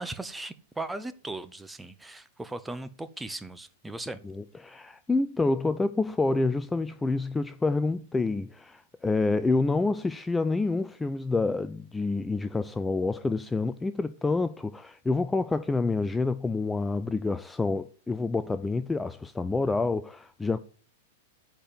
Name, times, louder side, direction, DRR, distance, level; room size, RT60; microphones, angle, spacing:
voice 1, 0.0-4.2, right 2 dB, 10° right, 0.9 m, -38 dB
voice 2, 4.2-20.6, left 3 dB, 10° left, 0.4 m, -28 dB
10.0 x 4.5 x 7.5 m
hypercardioid pair, 105°, 0 cm